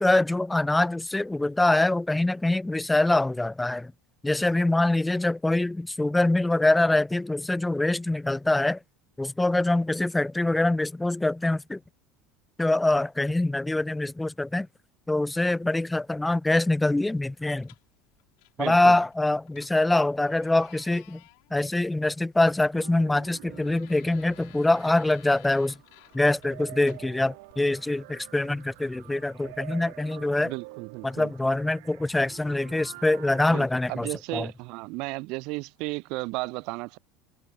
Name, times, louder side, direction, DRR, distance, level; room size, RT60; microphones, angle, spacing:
voice 1, 0.0-3.9 4.2-8.8 9.2-11.8 12.6-14.7 15.1-17.7 18.6-21.2 21.5-25.8 26.1-30.5 31.0-34.5, left 2 dB, 5° left, 0.3 m, -24 dB
sound 1, 16.8-27.5, left 40 dB or more, 65° left, 4.3 m, -57 dB
voice 2, 18.6-19.0 30.4-31.3 33.5-37.0, right 25 dB, 55° right, 0.5 m, -34 dB
sound 2, 22.7-33.4, right 27 dB, 75° right, 1.3 m, -48 dB
cardioid pair, 155°, 0 cm